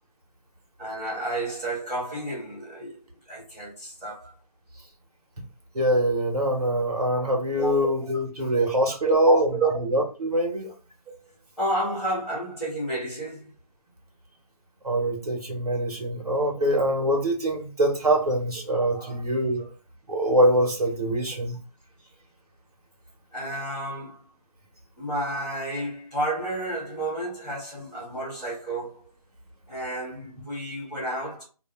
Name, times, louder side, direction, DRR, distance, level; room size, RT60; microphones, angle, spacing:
voice 1, 0.8-3.0 3.3-4.3 7.6-7.7 9.0-9.7 10.6-10.7 11.6-13.5 18.9-19.2 19.6-19.7 23.3-24.2 25.0-29.0 29.7-31.4, right 2 dB, ahead, 0.9 m, -30 dB
voice 2, 5.7-9.5 9.8-10.7 14.8-19.6 20.1-21.6, right 1 dB, 75° right, 1.0 m, -24 dB
2.5 x 2.0 x 3.1 m
figure-of-eight pair, 165°, 20 cm